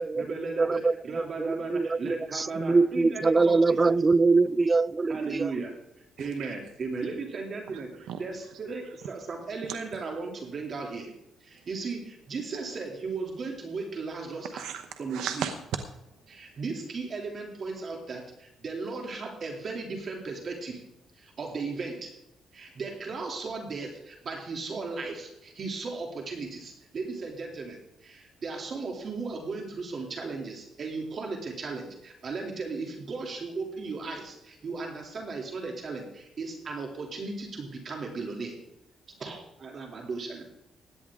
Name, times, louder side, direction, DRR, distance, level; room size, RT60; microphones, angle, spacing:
voice 1, 0.0-3.6 5.1-5.7 6.2-7.9 8.2-11.1 11.4-14.6 15.0-15.2 16.3-20.8 21.2-22.1 22.5-38.6 39.2-40.4, right 4 dB, 50° right, 2.8 m, -36 dB
voice 2, 0.6-5.5, right 3 dB, 30° right, 0.4 m, -24 dB
voice 3, 6.2-6.5 7.7-9.0 9.3-10.0 11.5-11.7 14.5-15.8 16.1-16.6 22.7-22.8, right 8 dB, 85° right, 0.9 m, -38 dB
17.0 x 11.0 x 3.7 m
cardioid pair, 90°, 0 cm